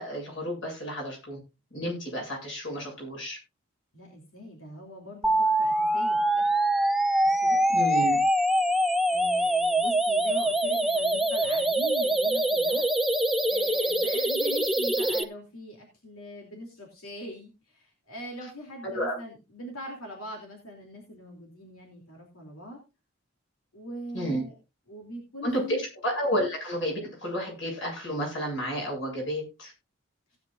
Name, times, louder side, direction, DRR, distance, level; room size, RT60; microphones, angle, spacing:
voice 1, 0.0-1.4 1.7-3.4 7.7-8.2 18.8-19.2 24.1-24.4 25.4-29.7, equal, 60° left, 0 dB, 7.9 m, -31 dB
voice 2, 3.9-6.5 7.2-7.6 8.1-8.2 9.1-12.9 13.5-22.8 23.7-24.5 24.9-25.8, equal, 90° left, 1 dB, 3.1 m, -42 dB
sound 1, 5.2-15.2, right 1 dB, ahead, 0.6 m, -24 dB
17.5 x 9.1 x 2.6 m, 0.28 s
head